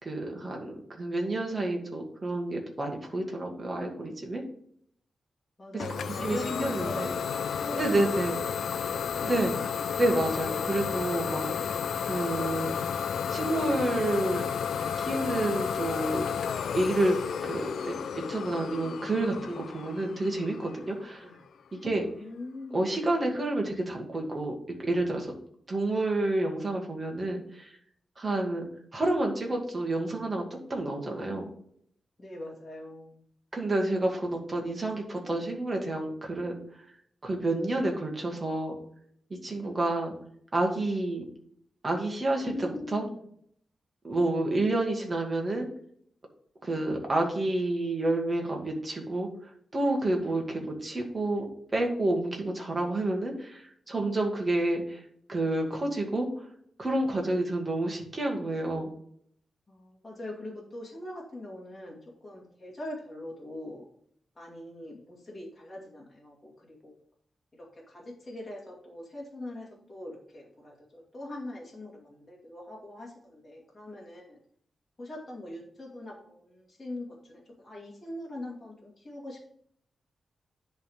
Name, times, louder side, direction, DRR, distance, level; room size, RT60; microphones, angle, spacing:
voice 1, 0.0-4.4 5.7-5.8 6.2-7.1 7.7-8.4 9.2-9.5 10.0-11.7 12.0-12.7 13.3-14.4 15.0-16.2 16.7-17.2 17.4-21.2 21.7-22.0 22.7-25.3 25.7-27.8 28.2-28.6 28.9-31.5 33.5-36.5 37.2-38.7 39.4-40.1 40.5-41.2 41.8-43.0 44.0-45.7 46.6-51.5 51.7-55.0 55.3-56.5 56.8-58.9, right 2 dB, 25° right, 1 dB, 1.6 m, -29 dB
voice 2, 5.6-8.1 8.7-9.5 21.2-21.4 22.2-22.8 32.2-33.2 42.4-43.2 59.7-63.9 64.4-66.9 67.5-74.4 75.0-79.5, left 1 dB, 20° left, -5 dB, 1.9 m, -42 dB
Idling / Domestic sounds home sounds, 5.8-21.3, left 7 dB, 85° left, 0.4 m, -32 dB
10.5 x 3.5 x 5.4 m, 0.65 s
wide cardioid pair, 170°, 0 cm